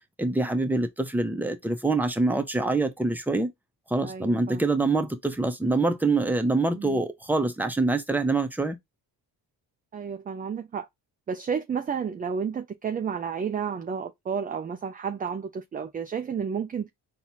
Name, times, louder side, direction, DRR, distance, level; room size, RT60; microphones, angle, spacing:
voice 1, 0.2-3.5 3.9-8.8, right 2 dB, 5° right, 0.7 m, -25 dB
voice 2, 4.0-4.6 6.7-7.0 9.9-10.9 11.3-16.9, right 6 dB, 20° right, 0.3 m, -31 dB
4.0 x 2.3 x 2.9 m
supercardioid pair, 60°, 45 cm